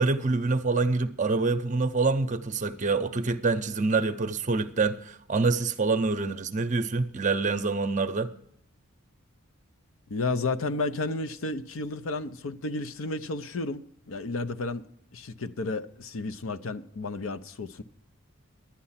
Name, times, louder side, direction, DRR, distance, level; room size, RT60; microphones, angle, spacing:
voice 1, 0.0-8.3, right 3 dB, 35° right, 0.6 m, -26 dB
voice 2, 10.1-14.9 15.1-17.8, left 3 dB, 75° left, 0.7 m, -32 dB
11.5 x 9.7 x 5.7 m
head